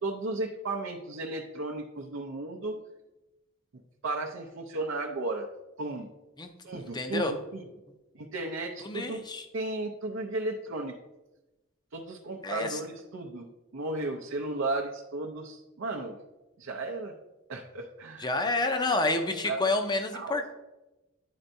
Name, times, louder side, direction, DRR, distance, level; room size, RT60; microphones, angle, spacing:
voice 1, 0.0-2.8 4.0-5.5 5.8-6.1 6.6-7.6 8.1-9.2 9.5-11.0 11.9-16.2 16.6-17.1 17.5-18.3 19.4-19.6 20.1-20.4, right 2 dB, 65° right, 1 dB, 0.6 m, -34 dB
voice 2, 6.9-7.3 8.8-9.5 12.4-12.8 18.2-20.5, left 2 dB, 20° left, 6 dB, 0.6 m, -29 dB
10.0 x 4.4 x 2.6 m, 1.0 s
head